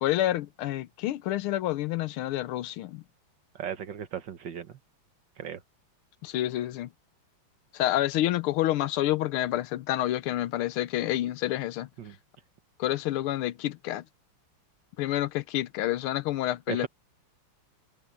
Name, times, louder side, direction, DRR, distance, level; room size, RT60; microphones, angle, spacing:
voice 1, 0.0-3.0 6.2-6.9 7.7-11.9 12.8-14.0 15.0-16.9, left 14 dB, 80° left, 1.5 m, -28 dB
voice 2, 3.6-4.7 5.4-5.6 12.0-12.2 16.7-16.9, right 9 dB, 60° right, 1.7 m, -36 dB
omnidirectional pair, 2.4 m